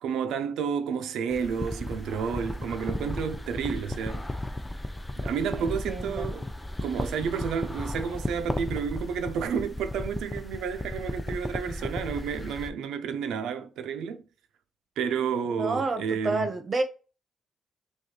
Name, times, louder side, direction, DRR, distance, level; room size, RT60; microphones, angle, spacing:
voice 1, 0.0-4.3 5.2-6.5 6.8-14.2 15.0-16.5, right 6 dB, 90° right, 0.7 m, -31 dB
sound 1, 1.3-12.7, left 1 dB, 10° left, 0.6 m, -35 dB
voice 2, 5.6-6.3 15.5-16.8, right 3 dB, 40° right, 1.1 m, -30 dB
6.3 x 2.6 x 3.1 m
cardioid pair, 95°, 0 cm